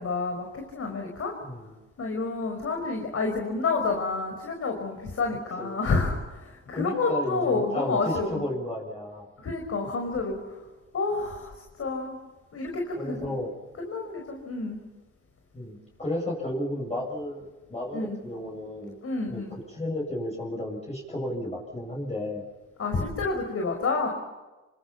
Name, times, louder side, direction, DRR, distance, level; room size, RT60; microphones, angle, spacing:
voice 1, 0.0-1.3 2.0-8.4 9.4-10.4 10.9-11.5 11.8-12.2 12.5-13.4 13.8-14.8 17.9-18.2 19.0-19.5 22.8-24.1, left 3 dB, 50° left, 2 dB, 5.6 m, -29 dB
voice 2, 1.4-1.7 5.6-5.7 6.7-9.3 13.0-13.5 15.5-19.0 19.3-22.4, left 1 dB, 20° left, -2 dB, 7.6 m, -33 dB
27.0 x 25.5 x 5.9 m, 1.2 s
cardioid pair, 90°, 30 cm